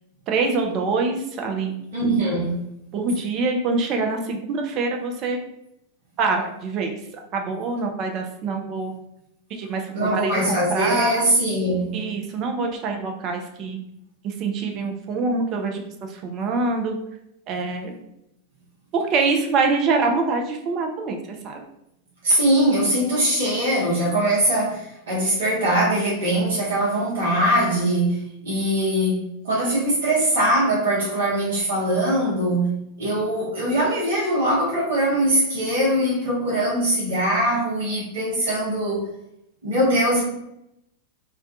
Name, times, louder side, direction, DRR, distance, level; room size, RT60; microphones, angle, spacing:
voice 1, 0.3-1.7 2.9-5.4 6.2-6.9 7.3-8.9 9.5-11.3 11.9-13.8 14.2-17.0 17.5-17.9 18.9-21.6, right 3 dB, 35° right, 3 dB, 0.4 m, -25 dB
voice 2, 1.9-2.6 9.9-11.9 22.2-39.1 39.6-40.2, right 1 dB, 65° right, -6 dB, 0.8 m, -22 dB
2.3 x 2.2 x 2.5 m, 0.81 s
figure-of-eight pair, 90°, 0 cm